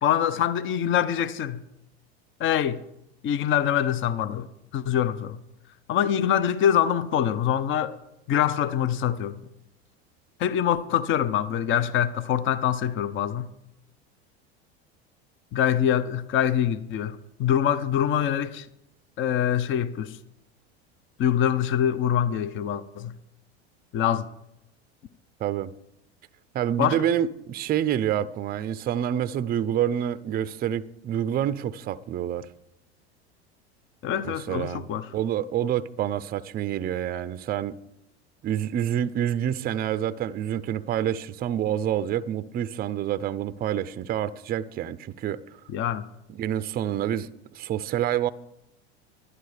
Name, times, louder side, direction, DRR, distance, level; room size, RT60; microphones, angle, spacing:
voice 1, 0.0-1.6 2.4-2.8 3.2-5.4 5.9-8.0 8.3-9.4 10.4-13.5 15.5-18.7 19.2-20.2 21.2-23.1 23.9-24.3 26.8-27.0 34.0-35.1 45.7-46.1, left 9 dB, 40° left, 0.7 m, -24 dB
voice 2, 25.4-25.7 26.5-32.5 34.2-34.8 35.1-37.8 38.4-45.4 46.3-48.3, right 10 dB, 30° right, 0.5 m, -27 dB
11.5 x 11.0 x 4.9 m
hypercardioid pair, 95°, 32 cm